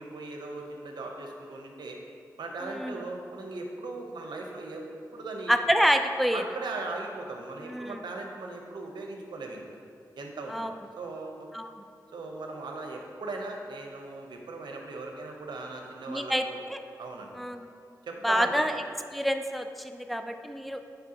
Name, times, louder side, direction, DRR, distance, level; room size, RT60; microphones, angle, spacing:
voice 1, 0.0-2.0 2.4-4.8 5.1-5.6 6.3-9.6 10.1-11.5 12.1-16.6 17.0-17.3 18.0-18.7, right 3 dB, 85° right, 1 dB, 0.8 m, -38 dB
voice 2, 2.6-3.0 5.5-6.4 7.6-8.0 10.5-10.7 11.5-11.7 16.1-16.4 16.7-16.8 17.4-17.7 18.2-18.7 19.1-20.8, equal, ahead, 7 dB, 0.5 m, -27 dB
9.1 x 4.4 x 2.8 m, 2.3 s
cardioid pair, 45°, 7 cm